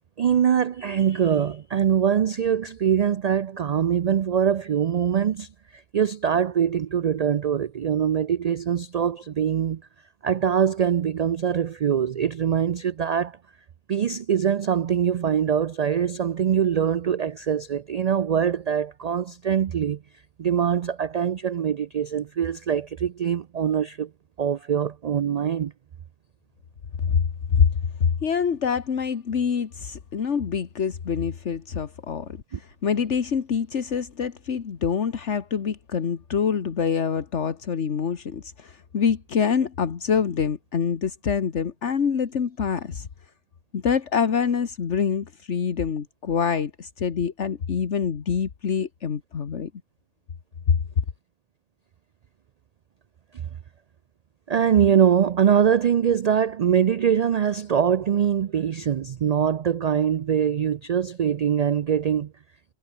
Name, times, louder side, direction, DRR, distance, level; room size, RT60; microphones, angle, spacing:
voice 1, 0.2-9.8 10.2-13.4 13.9-20.0 20.4-24.1 24.4-25.7 32.5-32.6 54.5-62.3, right 8 dB, 80° right, 0.3 m, -23 dB
voice 2, 27.0-27.7 28.0-43.1 43.7-49.7 50.7-50.8, left 6 dB, 70° left, 1.6 m, -25 dB
omnidirectional pair, 1.2 m